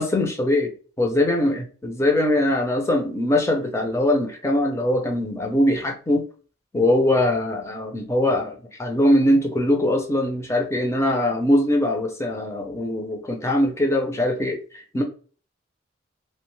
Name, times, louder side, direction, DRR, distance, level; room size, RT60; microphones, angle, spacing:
voice 1, 0.0-0.7 1.0-6.3 6.7-15.0, left 1 dB, 15° left, 3 dB, 0.5 m, -22 dB
2.8 x 2.1 x 3.1 m, 0.40 s
head